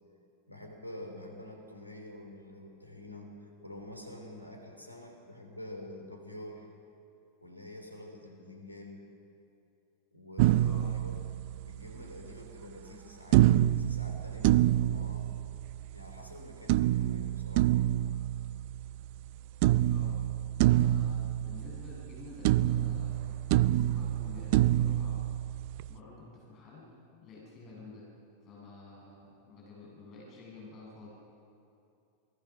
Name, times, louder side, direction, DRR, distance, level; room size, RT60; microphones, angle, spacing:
voice 1, 0.5-3.3 3.6-6.7 7.4-9.0 10.1-11.1 11.4-15.4 15.9-17.9, left 1 dB, 90° left, 2 dB, 3.3 m, -47 dB
sound 1, 10.4-11.9 13.3-15.9 16.7-19.3 19.6-22.2 22.4-25.9, right 14 dB, 45° right, 0.5 m, -27 dB
voice 2, 10.5-11.0 19.8-20.2 20.5-25.3 25.9-26.9 27.2-28.0 28.4-31.1, left 3 dB, 35° left, -4 dB, 7.7 m, -50 dB
28.0 x 19.0 x 6.2 m, 2.7 s
figure-of-eight pair, 90°, 0 cm